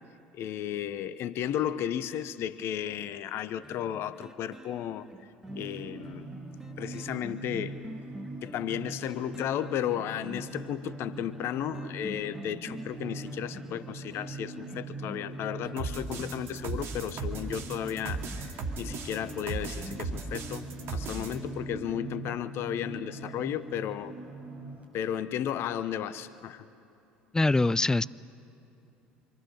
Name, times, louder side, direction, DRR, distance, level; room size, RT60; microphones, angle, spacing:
voice 1, 0.3-5.1 5.6-6.3 6.8-7.7 8.4-18.5 18.8-20.6 20.9-24.1 24.9-26.7, left 10 dB, 55° left, 14 dB, 0.9 m, -34 dB
sound 1, 3.6-22.3 22.8-22.9, right 1 dB, 10° right, 1.7 m, -48 dB
sound 2, 5.5-24.9, right 2 dB, 25° right, 7.4 m, -42 dB
sound 3, 15.8-21.4, right 4 dB, 55° right, 2.4 m, -36 dB
voice 2, 27.3-28.0, left 2 dB, 15° left, 19 dB, 0.5 m, -23 dB
26.5 x 25.0 x 8.0 m, 2.8 s
hypercardioid pair, 65°, 5 cm